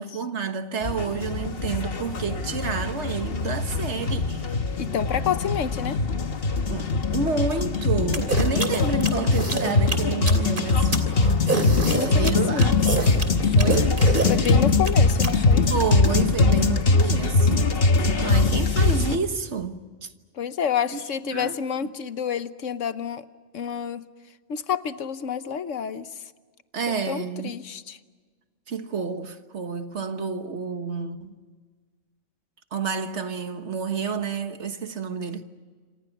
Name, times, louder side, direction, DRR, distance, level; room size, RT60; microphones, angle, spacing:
voice 1, 0.0-4.6 6.7-11.0 11.2-11.5 12.1-12.8 13.6-14.0 15.7-17.8 18.2-20.1 20.9-21.6 26.7-27.5 28.7-31.3 32.7-35.4, right 5 dB, 70° right, 1.7 m, -29 dB
sound 1, 0.8-19.2, left 3 dB, 50° left, 1.5 m, -22 dB
voice 2, 4.8-6.0 11.7-12.8 14.3-15.6 20.3-23.2 23.5-24.1 24.5-26.2 26.9-28.0, left 8 dB, 85° left, 1.3 m, -29 dB
sound 2, 8.1-15.3, right 3 dB, 45° right, 3.2 m, -26 dB
28.5 x 27.0 x 6.0 m
omnidirectional pair, 1.3 m